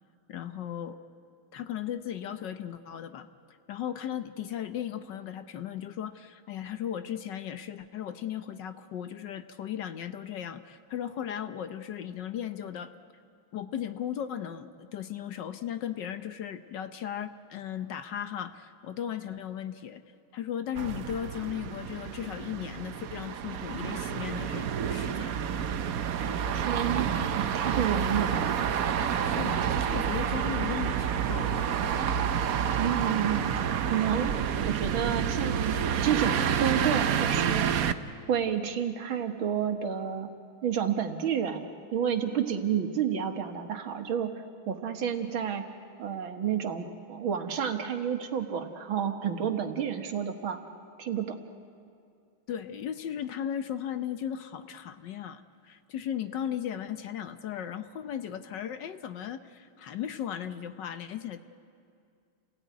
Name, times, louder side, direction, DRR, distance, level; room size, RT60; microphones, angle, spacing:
voice 1, 0.3-1.0 1.5-3.3 3.7-12.9 13.5-20.0 20.3-25.4 29.2-31.6 52.5-61.4, left 9 dB, 65° left, 10 dB, 1.4 m, -36 dB
sound 1, 20.7-37.9, right 8 dB, 60° right, 1.0 m, -29 dB
voice 2, 26.5-28.5 32.8-33.4 33.9-34.3 34.7-37.7 38.3-40.3 40.6-44.3 44.7-45.6 46.0-50.6 51.0-51.4, right 8 dB, 75° right, 6 dB, 2.2 m, -30 dB
29.5 x 17.5 x 9.5 m, 2.4 s
omnidirectional pair, 2.3 m